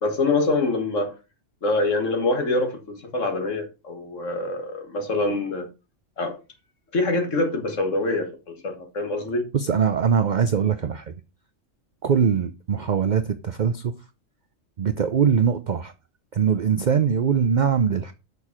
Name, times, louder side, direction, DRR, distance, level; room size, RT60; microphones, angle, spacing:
voice 1, 0.0-1.2 1.6-5.7 6.2-6.4 6.9-9.4, left 2 dB, 70° left, 2.1 m, -25 dB
voice 2, 9.5-11.0 12.0-13.9 14.8-15.9 16.3-18.1, right 7 dB, 50° right, 0.6 m, -22 dB
6.6 x 5.5 x 5.9 m
omnidirectional pair, 1.4 m